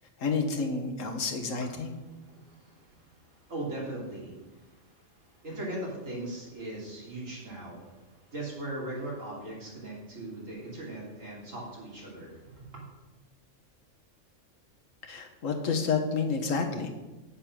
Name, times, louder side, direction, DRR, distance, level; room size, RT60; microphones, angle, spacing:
voice 1, 0.2-1.9 15.1-16.9, left 4 dB, 90° left, 5 dB, 1.6 m, -29 dB
voice 2, 1.6-12.8, right 1 dB, 90° right, -4 dB, 3.5 m, -40 dB
8.5 x 7.4 x 6.0 m, 1.1 s
omnidirectional pair, 1.3 m